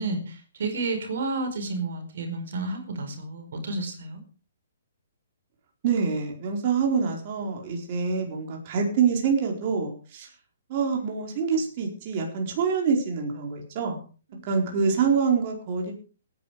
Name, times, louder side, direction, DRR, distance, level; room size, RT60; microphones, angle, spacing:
voice 1, 0.0-4.2, right 3 dB, 65° right, 5 dB, 4.7 m, -31 dB
voice 2, 5.8-10.3 10.7-14.0 14.5-15.9, right 5 dB, 40° right, 1 dB, 4.5 m, -26 dB
17.5 x 10.5 x 5.0 m, 0.37 s
hypercardioid pair, 145°, 0 cm